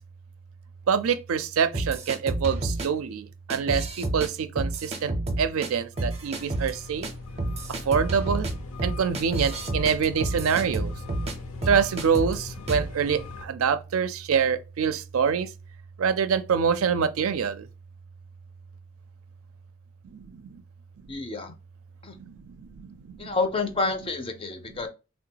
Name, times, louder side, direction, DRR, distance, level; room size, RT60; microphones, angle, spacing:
voice 1, 0.9-7.1 7.9-8.5 8.8-10.9 11.7-15.5 16.0-17.7 20.0-20.6 22.2-23.3, right 6 dB, 80° right, 0.4 m, -26 dB
sound 1, 1.7-2.9 3.5-4.3 4.6-5.7 6.0-6.7 7.0-7.1 7.4-11.3 11.6-12.4 12.7-12.9, right 2 dB, 30° right, 0.5 m, -30 dB
sound 2, 5.9-13.5, left 3 dB, 80° left, 0.6 m, -40 dB
voice 2, 21.1-21.6 22.0-22.2 23.2-24.9, left 3 dB, 25° left, 0.4 m, -29 dB
3.6 x 2.2 x 2.8 m
head